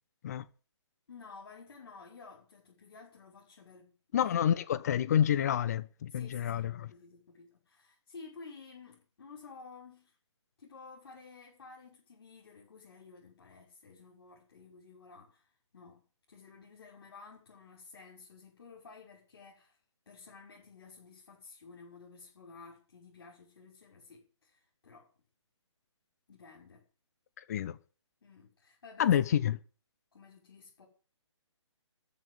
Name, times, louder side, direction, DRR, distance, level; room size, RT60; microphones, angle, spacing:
voice 1, 1.1-4.0 4.2-4.3 6.1-10.2 10.6-16.0 16.3-19.8 20.1-25.1 26.3-26.8 28.2-29.1 30.1-30.9, left 4 dB, 55° left, 5.8 m, -53 dB
voice 2, 4.1-6.9 27.4-27.8 29.0-29.6, left 9 dB, 35° left, 0.9 m, -28 dB
14.0 x 6.5 x 9.8 m
figure-of-eight pair, 140°, 16 cm